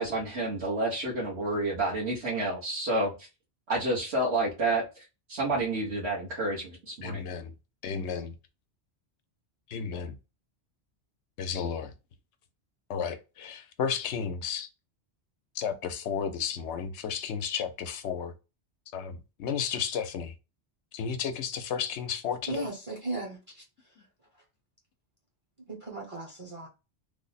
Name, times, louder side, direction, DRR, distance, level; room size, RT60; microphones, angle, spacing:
voice 1, 0.0-3.3 3.7-7.2, right 2 dB, 70° right, 1.3 m, -29 dB
voice 2, 7.0-7.5 7.8-8.3 9.7-10.2 11.4-11.9 12.9-14.7 15.5-18.3 18.9-20.3 20.9-22.7, left 7 dB, 85° left, 0.9 m, -33 dB
voice 3, 22.5-23.6 25.7-26.7, right 2 dB, 35° right, 0.8 m, -36 dB
3.3 x 2.0 x 4.0 m
omnidirectional pair, 1.1 m